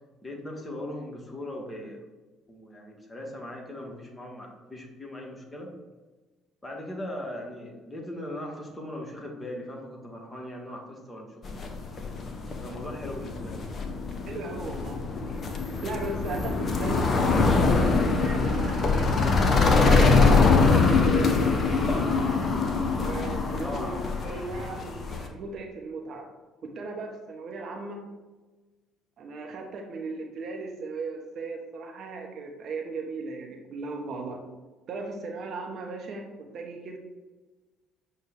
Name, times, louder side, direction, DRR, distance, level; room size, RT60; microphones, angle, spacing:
voice 1, 0.2-2.0 2.5-5.7 6.6-11.8 12.6-13.6 23.6-24.0, left 1 dB, 20° left, 0 dB, 1.0 m, -39 dB
sound 1, 11.4-25.3, left 4 dB, 40° left, 0.6 m, -23 dB
voice 2, 14.3-15.0 15.8-22.4 23.0-23.9 24.2-26.3 26.6-28.0 29.2-34.4 34.9-37.0, right 3 dB, 50° right, 2 dB, 0.6 m, -37 dB
6.4 x 2.2 x 3.4 m, 1.2 s
figure-of-eight pair, 50°, 0 cm